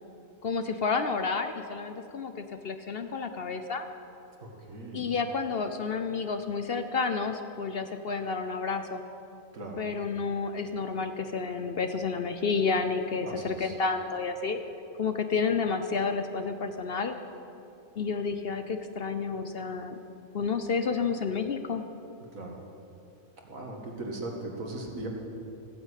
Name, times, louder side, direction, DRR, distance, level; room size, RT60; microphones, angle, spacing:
voice 1, 0.4-3.9 4.9-9.0 9.8-14.6 15.0-17.1 18.0-20.0 20.3-21.8, left 5 dB, 50° left, 8 dB, 0.9 m, -30 dB
voice 2, 4.4-5.1 9.5-9.8 13.2-13.7 22.3-22.6 23.4-25.1, right 2 dB, 75° right, 0 dB, 2.4 m, -39 dB
15.0 x 9.8 x 8.4 m, 2.7 s
omnidirectional pair, 1.4 m